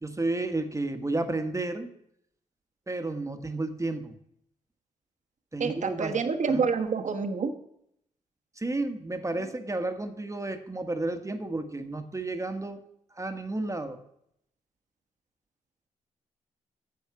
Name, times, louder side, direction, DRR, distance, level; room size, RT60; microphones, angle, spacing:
voice 1, 0.0-1.9 2.9-4.1 5.5-6.2 6.5-6.6 8.6-12.8 13.1-14.0, right 2 dB, 20° right, 8 dB, 1.2 m, -32 dB
voice 2, 5.6-7.5, right 5 dB, 60° right, 6 dB, 1.2 m, -27 dB
9.3 x 7.2 x 6.0 m, 0.75 s
supercardioid pair, 45°, 15 cm